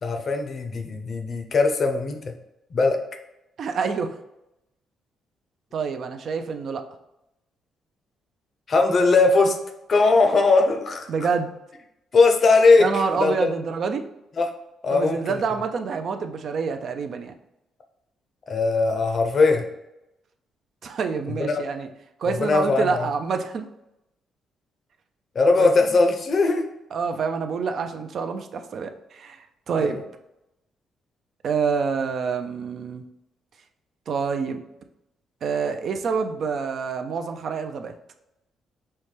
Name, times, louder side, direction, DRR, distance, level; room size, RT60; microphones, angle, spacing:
voice 1, 0.0-2.3 2.7-3.0 8.7-9.6 9.9-11.1 12.1-13.5 14.4-14.5 14.8-15.2 18.5-19.7 21.4-21.6 22.3-23.1 25.3-26.6 29.8-29.9, left 3 dB, 45° left, 5 dB, 0.5 m, -19 dB
voice 2, 3.6-4.2 5.7-6.8 11.1-11.5 12.8-14.0 14.9-17.3 20.8-21.9 22.2-23.6 25.6-25.7 26.9-30.0 31.4-33.0 34.1-34.6 35.4-37.9, right 5 dB, 60° right, 7 dB, 0.4 m, -27 dB
5.5 x 2.1 x 3.2 m, 0.89 s
cardioid pair, 90°, 0 cm